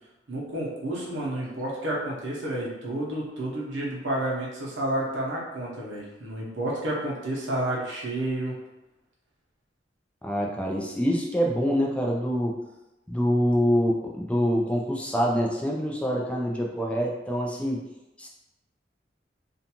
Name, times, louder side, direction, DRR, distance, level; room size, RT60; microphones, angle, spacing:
voice 1, 0.3-8.6, right 1 dB, 90° right, -4 dB, 0.8 m, -30 dB
voice 2, 10.2-12.6 13.1-17.8 18.2-18.3, equal, 5° left, -1 dB, 0.3 m, -25 dB
2.5 x 2.2 x 2.8 m, 0.96 s
head